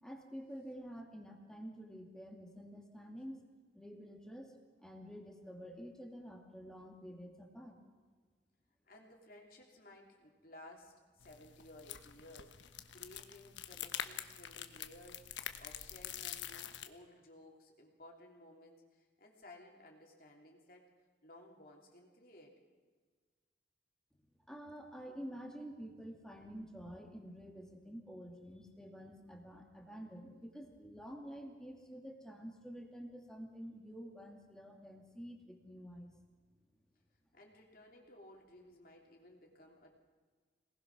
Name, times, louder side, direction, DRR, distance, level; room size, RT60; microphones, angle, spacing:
voice 1, 0.0-3.5 3.7-7.8 24.5-36.1, equal, 5° left, 2 dB, 2.4 m, -49 dB
voice 2, 8.8-20.9 21.2-22.5 37.3-40.0, left 1 dB, 50° left, 0 dB, 3.3 m, -57 dB
sound 1, 11.2-16.9, left 9 dB, 85° left, 1.2 m, -46 dB
26.0 x 19.0 x 6.1 m, 1.5 s
head